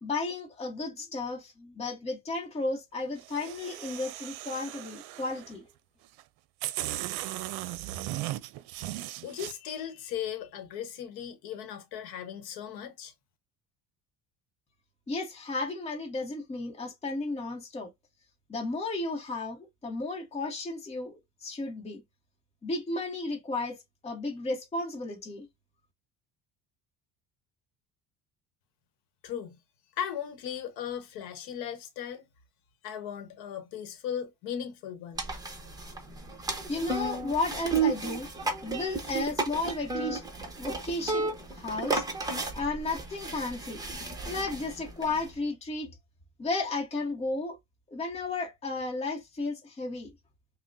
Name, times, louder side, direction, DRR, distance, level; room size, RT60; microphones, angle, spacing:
voice 1, 0.0-5.6 15.1-17.9 18.5-22.0 22.6-23.8 24.0-25.5 36.7-38.3 38.6-40.2 40.6-42.1 42.5-43.8 44.3-45.9 46.4-47.6 47.9-50.1, left 3 dB, 15° left, 1.1 m, -33 dB
sound 1, 3.2-5.5 6.2-6.3 6.6-9.5, right 15 dB, 80° right, 0.6 m, -37 dB
voice 2, 9.2-13.1 29.2-29.6 30.0-32.3 32.8-35.2, left 9 dB, 90° left, 1.1 m, -37 dB
sound 2, 35.2-45.3, right 3 dB, 10° right, 1.0 m, -33 dB
5.7 x 2.2 x 2.5 m
cardioid pair, 145°, 37 cm